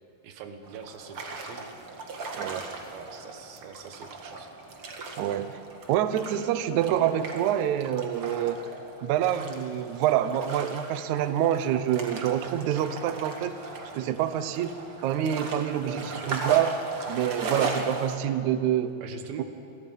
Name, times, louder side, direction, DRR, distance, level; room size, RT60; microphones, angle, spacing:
voice 1, 0.2-1.7 2.3-4.5 15.8-16.3 19.0-19.4, right 6 dB, 70° right, 7 dB, 3.1 m, -43 dB
sound 1, 0.6-18.2, right 3 dB, 45° right, 2.1 m, -38 dB
voice 2, 5.2-5.6 5.9-8.6 9.0-13.5 13.9-14.7 15.0-16.7 17.1-18.9 19.4-19.5, right 10 dB, 90° right, 11 dB, 1.6 m, -26 dB
sound 2, 5.4-5.9 6.6-7.0 7.7-8.2 9.1-9.5 10.0-10.6 10.9-11.4 12.3-12.8 13.2-14.1 15.0-16.7, left 3 dB, 35° left, 2.3 m, -53 dB
30.0 x 22.5 x 5.5 m, 2.7 s
omnidirectional pair, 4.7 m